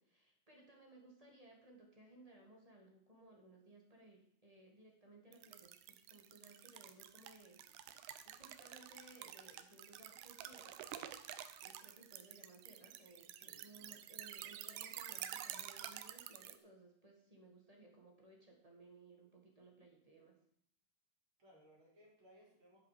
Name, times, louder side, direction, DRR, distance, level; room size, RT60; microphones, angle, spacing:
voice 1, 0.0-7.6 8.2-10.8 11.6-20.4, right 2 dB, 20° right, 0 dB, 1.1 m, -61 dB
sound 1, 5.3-16.6, right 12 dB, 75° right, 2.0 m, -50 dB
voice 2, 13.4-14.0 21.4-22.9, equal, 35° right, -4 dB, 4.3 m, -65 dB
11.0 x 7.5 x 5.0 m, 0.70 s
omnidirectional pair, 4.0 m